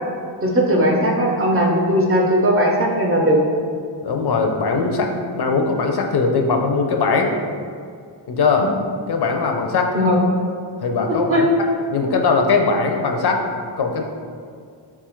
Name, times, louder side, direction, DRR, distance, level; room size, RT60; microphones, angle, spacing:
voice 1, 0.4-3.4 9.9-10.2 11.1-11.5, equal, 30° right, -1 dB, 0.6 m, -18 dB
voice 2, 4.0-7.3 8.3-8.7 9.1-9.9 10.8-11.5 11.9-13.4 13.8-14.0, left 4 dB, 60° left, 3 dB, 0.5 m, -20 dB
4.5 x 2.4 x 4.3 m, 2.2 s
wide cardioid pair, 145°, 45 cm